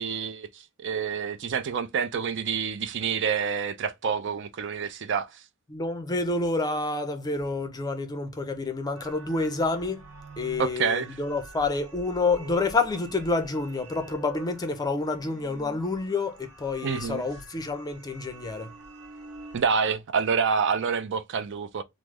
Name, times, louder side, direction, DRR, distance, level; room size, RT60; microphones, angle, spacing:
voice 1, 0.0-5.4 10.6-11.2 16.8-17.3 19.5-21.8, right 6 dB, 55° right, 0.4 m, -28 dB
voice 2, 5.7-10.0 10.4-18.7, left 3 dB, 20° left, 0.5 m, -28 dB
sound 1, 8.9-19.6, right 3 dB, 75° right, 1.0 m, -46 dB
3.1 x 2.0 x 3.5 m
head